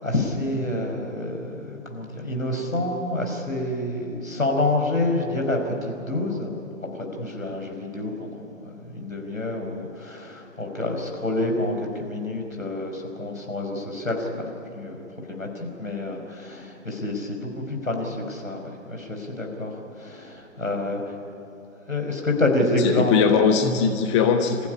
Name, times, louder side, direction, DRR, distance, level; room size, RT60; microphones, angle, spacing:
voice 1, 0.0-6.5 7.0-21.0 21.9-23.4, left 1 dB, 80° left, 2 dB, 5.2 m, -28 dB
voice 2, 22.7-24.7, left 6 dB, 20° left, 6 dB, 1.1 m, -20 dB
27.0 x 15.0 x 10.0 m, 2.8 s
figure-of-eight pair, 130°, 40 cm